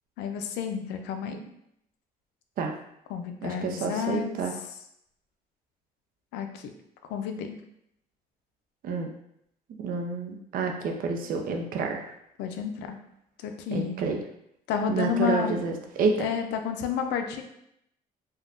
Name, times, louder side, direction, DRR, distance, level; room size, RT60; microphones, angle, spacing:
voice 1, 0.2-1.4 3.1-4.3 6.3-6.6 7.1-7.6 12.4-13.0 13.4-14.0 14.7-15.5 16.2-17.4, left 7 dB, 90° left, 6 dB, 0.4 m, -30 dB
voice 2, 3.4-4.5 8.8-9.1 9.8-12.0 13.7-14.2 14.9-16.3, right 4 dB, 55° right, 3 dB, 0.5 m, -29 dB
3.4 x 2.2 x 2.4 m, 0.76 s
cardioid pair, 110°, 17 cm